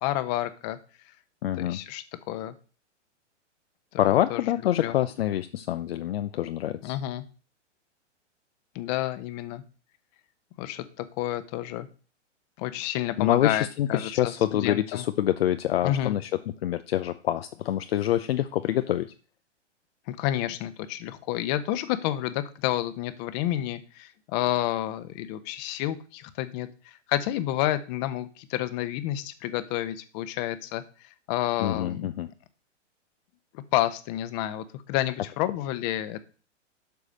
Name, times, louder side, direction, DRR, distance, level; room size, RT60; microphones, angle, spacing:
voice 1, 0.0-0.8 1.6-2.5 3.9-4.4 4.8-5.0 6.8-7.2 8.7-9.6 10.6-11.9 12.6-15.0 15.8-16.2 20.1-30.8 31.3-32.1 33.5-36.2, left 14 dB, 35° left, 13 dB, 1.1 m, -30 dB
voice 2, 1.4-1.8 4.0-7.0 13.2-16.3 16.6-19.1 31.6-32.3, left 12 dB, 55° left, 11 dB, 0.7 m, -26 dB
11.5 x 4.8 x 6.5 m, 0.38 s
figure-of-eight pair, 115°, 37 cm